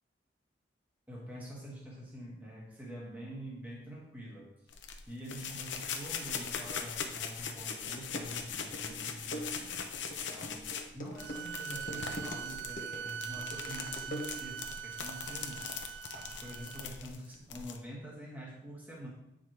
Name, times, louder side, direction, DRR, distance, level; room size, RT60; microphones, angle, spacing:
voice 1, 1.1-4.5 5.1-9.7 10.1-15.7 16.1-19.1, equal, 10° right, -5 dB, 1.5 m, -46 dB
sound 1, 4.7-17.8, left 6 dB, 90° left, 0.8 m, -40 dB
sound 2, 7.5-7.6 8.0-14.7, equal, 45° left, 1.0 m, -44 dB
sound 3, 11.2-16.9, right 9 dB, 80° right, 0.3 m, -42 dB
9.3 x 5.0 x 3.0 m, 0.85 s
head